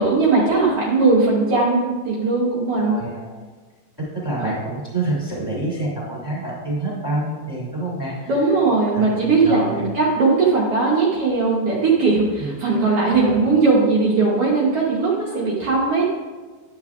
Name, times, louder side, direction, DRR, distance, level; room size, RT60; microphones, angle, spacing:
voice 1, 0.0-3.0 4.4-4.5 8.3-16.1, right 3 dB, 85° right, -6 dB, 1.3 m, -19 dB
voice 2, 2.7-3.4 4.0-8.4 8.9-9.1 9.4-9.8 12.4-12.5 13.2-13.4, right 2 dB, 10° right, -4 dB, 1.6 m, -27 dB
10.5 x 7.1 x 2.4 m, 1.4 s
omnidirectional pair, 4.2 m